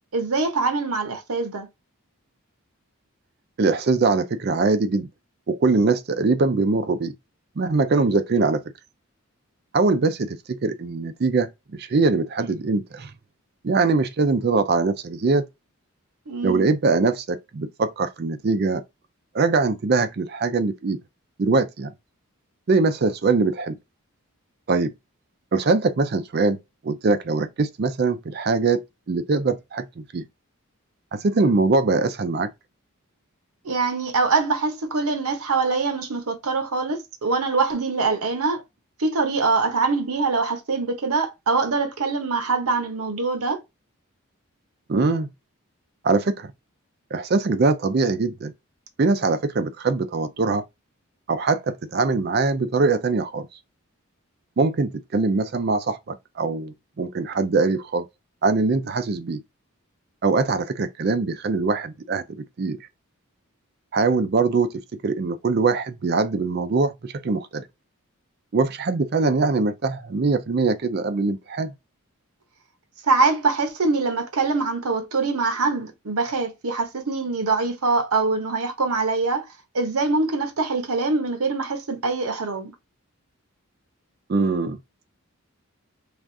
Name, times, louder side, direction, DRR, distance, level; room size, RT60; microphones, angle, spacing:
voice 1, 0.1-1.7 16.3-16.6 33.6-38.6 39.0-43.6 73.0-79.4 79.7-82.7, right 3 dB, 85° right, 0.9 m, -23 dB
voice 2, 3.6-5.1 5.5-7.1 7.6-8.6 9.7-13.1 13.6-15.4 16.4-18.8 19.3-21.0 21.4-21.9 22.7-23.7 24.7-24.9 25.5-26.6 26.8-28.8 29.1-30.3 31.1-32.5 44.9-45.3 46.0-46.5 47.1-48.5 49.0-50.6 51.3-53.5 54.6-58.0 58.4-59.4 60.2-62.2 62.6-62.8 63.9-67.6 68.5-71.7 84.3-84.8, right 3 dB, 45° right, 0.4 m, -22 dB
3.4 x 2.4 x 2.6 m
head